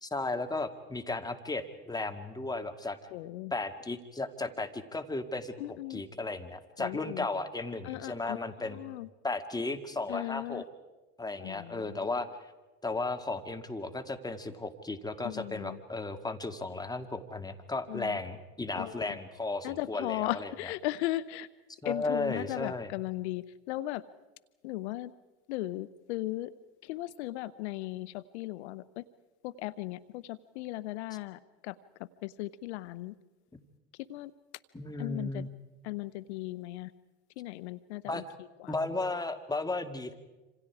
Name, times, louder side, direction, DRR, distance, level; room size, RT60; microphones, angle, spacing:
voice 1, 0.0-3.0 3.5-8.8 9.2-10.6 11.2-12.3 12.8-20.7 21.8-22.9 34.7-35.5 38.1-38.2 38.7-40.1, left 2 dB, 10° left, 7 dB, 2.2 m, -35 dB
voice 2, 3.1-3.5 5.6-6.0 6.8-7.3 7.8-9.1 10.1-10.6 11.4-12.2 15.2-15.8 17.9-18.2 18.8-19.2 19.6-21.5 21.8-24.0 24.6-25.1 25.5-26.5 26.8-29.0 29.4-33.1 34.1-34.3 35.0-35.5 35.8-36.9 37.4-38.7, left 17 dB, 80° left, 17 dB, 0.8 m, -37 dB
27.0 x 27.0 x 4.9 m, 1.1 s
hypercardioid pair, 85°, 34 cm